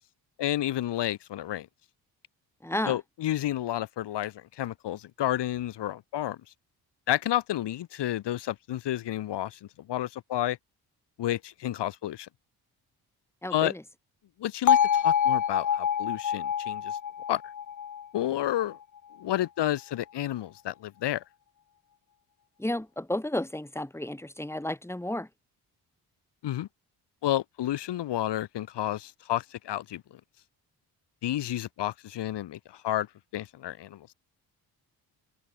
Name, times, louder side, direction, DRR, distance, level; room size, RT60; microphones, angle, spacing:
voice 1, 0.4-1.7 2.8-6.4 7.1-10.6 11.2-12.3 13.5-13.7 14.4-17.0 17.3-17.4 18.1-18.8 19.2-21.2 26.4-26.7 27.2-30.2 31.2-33.1 33.3-34.1, left 13 dB, 80° left, 2.6 m, -31 dB
voice 2, 2.6-3.0 13.4-13.8 22.6-25.3, left 1 dB, 5° left, 3.4 m, -32 dB
Bell, 14.7-18.7, left 8 dB, 45° left, 1.2 m, -26 dB
cardioid pair, 70°, 41 cm